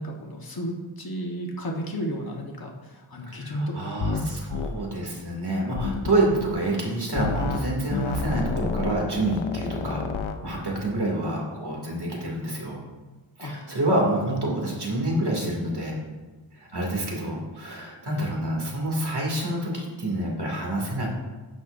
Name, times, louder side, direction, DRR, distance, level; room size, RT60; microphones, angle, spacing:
voice 1, 0.0-3.7 4.1-4.5 13.4-13.5, equal, 50° left, 0 dB, 1.5 m, -33 dB
voice 2, 3.3-10.1 10.4-12.8 13.4-16.0 16.5-21.1, right 1 dB, 55° right, -2 dB, 2.7 m, -27 dB
sound 1, 4.0-4.2 4.5-4.7 5.8-6.5 7.2-7.6 7.9-10.4, left 5 dB, 90° left, 0.7 m, -30 dB
11.5 x 8.0 x 2.7 m, 1.2 s
wide cardioid pair, 70°, 46 cm